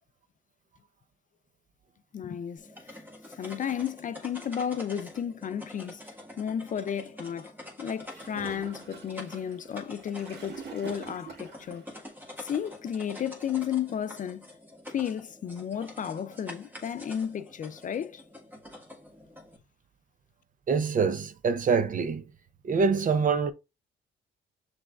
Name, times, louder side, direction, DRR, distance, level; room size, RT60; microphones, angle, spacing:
voice 1, 2.1-3.0 3.3-6.0 6.4-7.5 7.8-12.1 12.4-14.5 14.9-18.2, left 8 dB, 40° left, 0.4 m, -33 dB
sound 1, 2.6-19.6, left 1 dB, 10° right, 1.6 m, -47 dB
Gurgling / Toilet flush, 8.1-11.8, right 5 dB, 60° right, 1.8 m, -45 dB
voice 2, 20.7-22.2 22.6-23.5, right 5 dB, 40° right, 0.7 m, -25 dB
6.1 x 3.4 x 2.4 m
cardioid pair, 90°, 20 cm